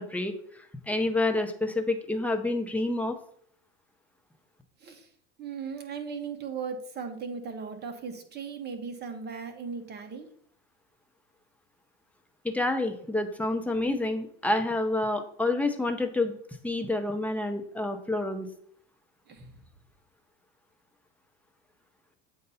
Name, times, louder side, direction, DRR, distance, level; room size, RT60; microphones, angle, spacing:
voice 1, 0.0-3.2 12.4-16.4 16.6-18.5, left 2 dB, 5° left, 5 dB, 0.7 m, -28 dB
voice 2, 5.4-10.3 19.3-19.6, right 5 dB, 30° right, 6 dB, 1.1 m, -37 dB
7.8 x 2.7 x 5.5 m, 0.63 s
supercardioid pair, 115°, 33 cm